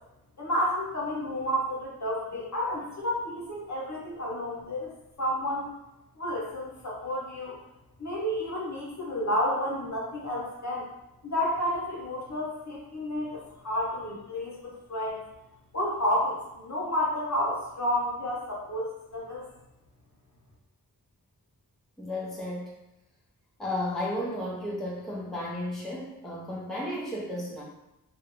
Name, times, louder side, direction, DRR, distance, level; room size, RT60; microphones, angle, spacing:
voice 1, 0.4-4.9 5.2-5.7 6.2-7.6 8.0-10.8 11.2-15.2 15.7-19.4, equal, 45° left, -5 dB, 0.7 m, -30 dB
voice 2, 22.0-22.8 23.6-27.6, left 1 dB, ahead, -4 dB, 0.5 m, -33 dB
2.3 x 2.0 x 2.9 m, 0.92 s
wide cardioid pair, 40°, 39 cm